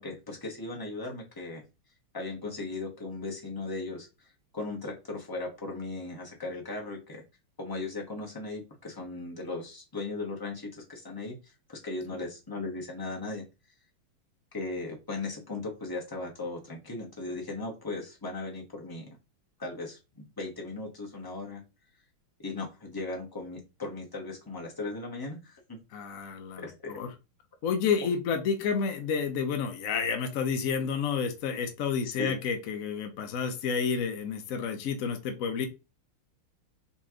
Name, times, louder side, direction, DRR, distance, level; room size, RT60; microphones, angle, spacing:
voice 1, 0.0-1.6 2.1-4.3 4.5-7.2 7.6-13.5 14.5-19.1 19.6-21.6 22.4-25.8 26.6-26.9 32.2-32.4, left 3 dB, 20° left, -1 dB, 0.7 m, -37 dB
voice 2, 25.9-27.1 27.6-35.7, left 6 dB, 75° left, 6 dB, 0.7 m, -30 dB
4.3 x 3.0 x 3.6 m, 0.28 s
omnidirectional pair, 2.3 m